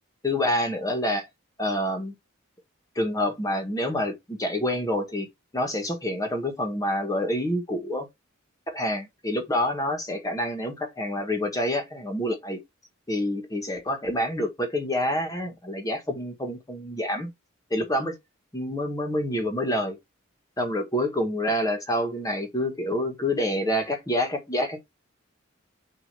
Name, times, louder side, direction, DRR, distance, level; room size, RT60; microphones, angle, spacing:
voice 1, 0.2-1.3 1.6-2.1 2.9-5.3 5.5-8.1 8.7-12.6 13.1-17.3 17.7-18.2 18.5-20.0 20.6-24.8, left 1 dB, 15° left, 1.4 m, -27 dB
6.2 x 2.8 x 5.4 m
head